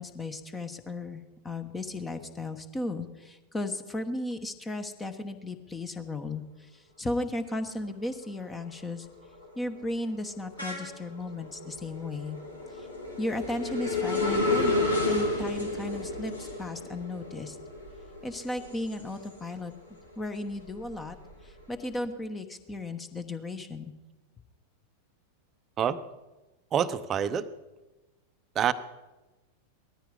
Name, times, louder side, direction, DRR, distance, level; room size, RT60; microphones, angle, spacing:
voice 1, 0.0-6.4 6.7-9.1 9.6-12.4 13.2-14.8 15.1-17.6 18.2-19.7 20.2-21.2 21.4-23.9, left 2 dB, 15° left, 9 dB, 1.2 m, -35 dB
sound 1, 7.7-8.1 8.5-19.7 20.1-21.8, left 2 dB, 85° left, 3.0 m, -32 dB
voice 2, 26.7-27.5 28.5-28.7, right 9 dB, 25° right, 13 dB, 0.7 m, -26 dB
18.5 x 13.5 x 5.2 m, 1.1 s
figure-of-eight pair, 90°, 0 cm